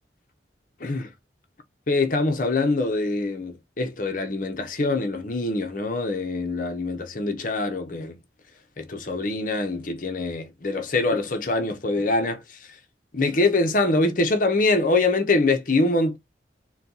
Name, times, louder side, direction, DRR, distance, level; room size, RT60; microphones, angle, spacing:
voice 1, 0.8-1.1 1.9-8.2 8.8-12.4 13.1-16.2, left 2 dB, 45° left, 0.8 m, -24 dB
4.2 x 2.3 x 3.9 m
head